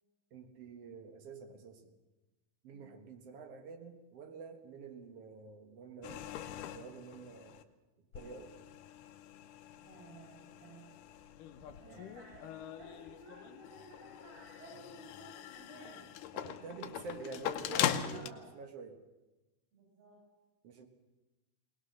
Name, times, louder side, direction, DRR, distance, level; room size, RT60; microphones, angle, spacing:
voice 1, 0.3-1.9 2.6-6.3 6.7-7.6 8.1-8.5 11.8-12.0 16.3-19.0 20.6-20.9, right 4 dB, 60° right, 6 dB, 1.7 m, -48 dB
sound 1, 6.0-7.6 8.1-18.3, left 10 dB, 80° left, 2.0 m, -41 dB
voice 2, 9.8-10.9 11.5-12.5 12.7-16.1 16.7-17.4 18.0-18.5 19.7-20.2, right 2 dB, 75° right, -4 dB, 7.7 m, -55 dB
20.0 x 20.0 x 6.5 m, 1.1 s
omnidirectional pair, 4.7 m